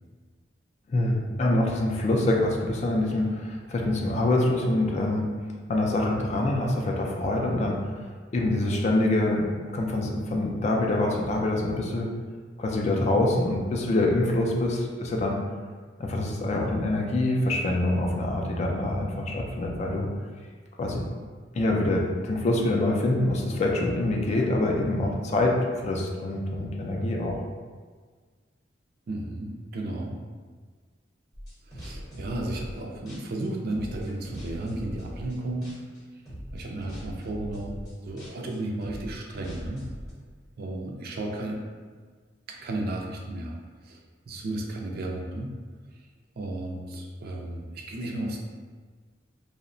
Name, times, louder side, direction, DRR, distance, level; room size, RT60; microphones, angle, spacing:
voice 1, 0.9-5.2 5.7-7.9 8.3-12.1 12.6-15.4 16.0-20.1 20.8-21.0 21.5-25.6 25.8-27.4, left 2 dB, 40° left, 0 dB, 0.3 m, -25 dB
voice 2, 29.1-30.2 31.7-35.7 36.5-39.8 40.6-41.6 42.5-43.5 43.8-44.0 44.3-45.5 46.4-48.4, right 1 dB, 55° right, 0 dB, 0.4 m, -33 dB
sound 1, 31.3-32.8 33.1-35.4 35.6-36.0 36.3-40.1, equal, 20° left, 0.8 m, -40 dB
2.7 x 2.0 x 2.5 m, 1.5 s
head